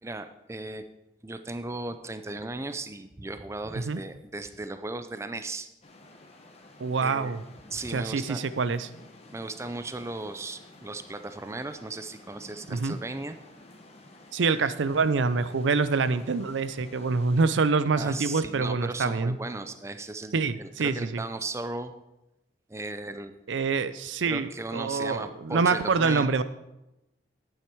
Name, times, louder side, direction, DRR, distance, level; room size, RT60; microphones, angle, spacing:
voice 1, 0.0-0.8 1.2-5.7 7.0-7.3 7.7-8.4 9.3-13.4 18.0-21.9 22.7-23.3 24.3-26.3, right 2 dB, 15° right, 10 dB, 0.5 m, -36 dB
sound 1, 5.8-17.7, left 2 dB, 35° left, 1.2 m, -52 dB
voice 2, 6.8-7.4 7.9-8.9 12.7-13.0 14.3-19.4 20.3-21.2 23.5-26.4, right 4 dB, 85° right, 14 dB, 0.5 m, -26 dB
10.5 x 8.8 x 4.6 m, 0.93 s
head